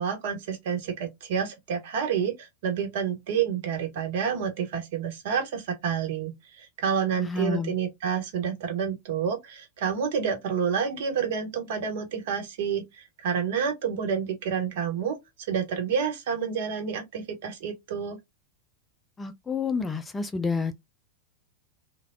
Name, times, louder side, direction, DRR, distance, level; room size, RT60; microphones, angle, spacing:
voice 1, 0.0-15.2 15.5-18.2, right 7 dB, 50° right, 1.0 m, -29 dB
voice 2, 7.2-7.7 19.2-20.7, left 4 dB, 10° left, 0.4 m, -29 dB
3.3 x 2.2 x 2.2 m
figure-of-eight pair, 90°, 0 cm